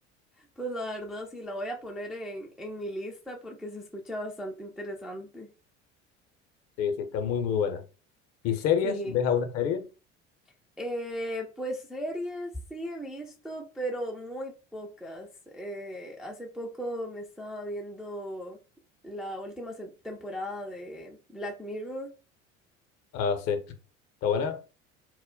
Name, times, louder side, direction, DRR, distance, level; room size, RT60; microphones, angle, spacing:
voice 1, 0.6-5.5 8.8-9.2 10.8-18.6 19.0-22.1, equal, ahead, 0.3 m, -37 dB
voice 2, 6.8-7.8 8.4-9.9 23.1-23.6 24.2-24.6, left 7 dB, 45° left, 0.6 m, -27 dB
2.1 x 2.0 x 3.7 m
figure-of-eight pair, 65°, 36 cm